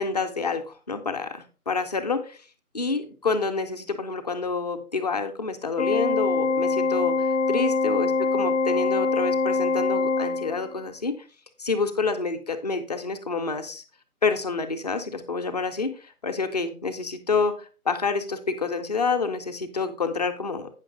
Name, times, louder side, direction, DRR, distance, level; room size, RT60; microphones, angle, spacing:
voice 1, 0.0-2.4 2.7-11.2 11.6-13.8 14.2-20.7, left 4 dB, 25° left, 6 dB, 0.8 m, -28 dB
Organ, 5.8-10.8, left 3 dB, 55° left, 0.8 m, -24 dB
9.0 x 6.2 x 3.9 m, 0.34 s
figure-of-eight pair, 155°, 45 cm